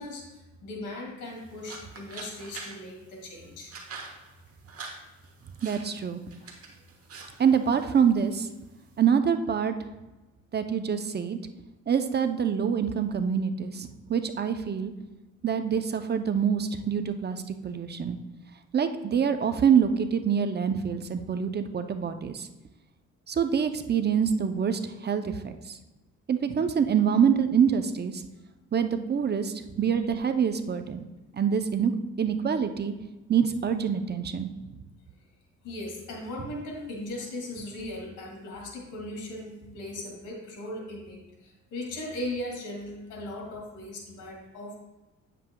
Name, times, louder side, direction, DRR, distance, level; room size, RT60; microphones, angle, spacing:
voice 1, 0.0-3.7 6.4-6.5 35.6-44.8, left 1 dB, 85° left, -1 dB, 2.2 m, -38 dB
sound 1, 1.2-9.0, right 4 dB, 50° right, 1.3 m, -46 dB
voice 2, 5.6-6.2 7.4-8.5 9.0-9.7 10.5-11.4 11.9-14.9 15.4-18.2 18.7-22.5 23.3-25.8 26.3-28.2 28.7-31.0 31.3-31.9 32.2-32.9 33.3-34.5, right 7 dB, 35° right, 8 dB, 0.5 m, -25 dB
9.0 x 7.5 x 2.2 m, 1.1 s
cardioid pair, 90°, 30 cm